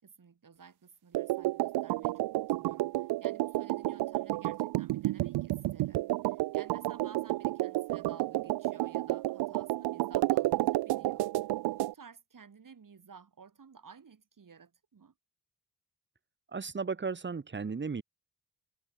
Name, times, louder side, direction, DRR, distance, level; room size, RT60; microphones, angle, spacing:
voice 1, 0.0-11.5 11.8-15.1, right 6 dB, 50° right, 5.5 m, -54 dB
sound 1, 1.1-11.9, right 17 dB, 65° right, 0.5 m, -31 dB
voice 2, 16.5-18.0, right 5 dB, 25° right, 1.1 m, -35 dB
hypercardioid pair, 40°, 42 cm